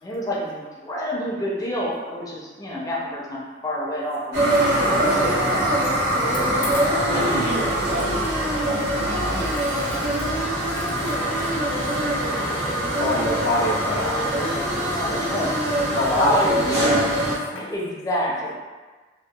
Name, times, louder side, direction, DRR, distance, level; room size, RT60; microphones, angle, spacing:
voice 1, 0.0-4.5 4.9-5.7 9.1-9.5 14.9-15.5 15.8-17.1 17.5-18.5, equal, 20° left, -5 dB, 0.5 m, -28 dB
sound 1, 4.3-17.4, right 1 dB, 90° right, 0.9 m, -23 dB
voice 2, 7.0-8.3 8.6-10.0, right 1 dB, 60° right, -4 dB, 0.5 m, -31 dB
voice 3, 13.0-14.5 16.0-17.0, left 1 dB, 85° left, -3 dB, 0.5 m, -25 dB
2.7 x 2.2 x 2.2 m, 1.3 s
head